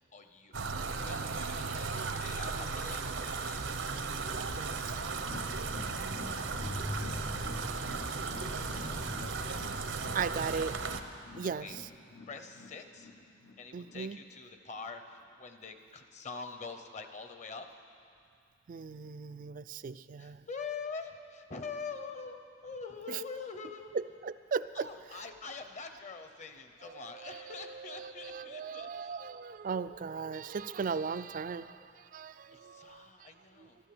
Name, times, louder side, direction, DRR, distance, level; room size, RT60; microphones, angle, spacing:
voice 1, 0.0-3.6 7.9-8.1 8.6-9.0 10.0-10.4 11.6-11.8 12.3-13.1 13.6-17.8 20.2-23.9 24.7-29.2 32.5-33.8, left 4 dB, 40° left, 7 dB, 0.9 m, -45 dB
sound 1, 0.5-11.0, right 4 dB, 80° right, 0.8 m, -36 dB
Squeak, 4.5-10.8 11.6-11.7, left 1 dB, 10° left, 0.6 m, -45 dB
voice 2, 4.5-5.0 10.1-10.8 11.4-11.7 13.7-14.2 18.7-20.5 23.1-23.2 23.9-24.9 26.9-33.3 33.6-33.7, right 5 dB, 45° right, 14 dB, 0.3 m, -38 dB
sound 2, 5.1-14.4 14.7-14.8 15.2-15.3, left 2 dB, 85° left, 1.2 m, -49 dB
12.5 x 12.0 x 7.8 m, 2.5 s
head